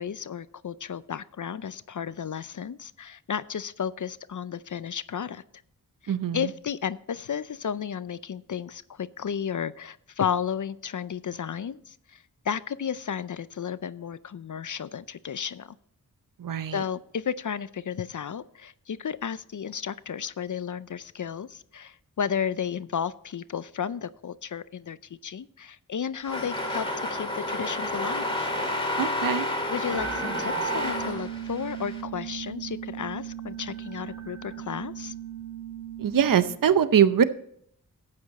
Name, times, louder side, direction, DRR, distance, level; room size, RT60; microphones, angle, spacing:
voice 1, 0.0-5.4 6.0-15.8 16.7-28.5 29.7-35.1, left 7 dB, 60° left, 16 dB, 0.5 m, -33 dB
voice 2, 6.1-6.5 16.4-16.8 29.0-29.5 36.0-37.2, right 8 dB, 65° right, 13 dB, 0.7 m, -22 dB
sound 1, 26.2-32.0, left 1 dB, 15° left, 2.3 m, -30 dB
sound 2, 29.9-36.5, right 8 dB, 45° right, 1.6 m, -36 dB
12.5 x 8.7 x 4.1 m, 0.68 s
wide cardioid pair, 90°, 36 cm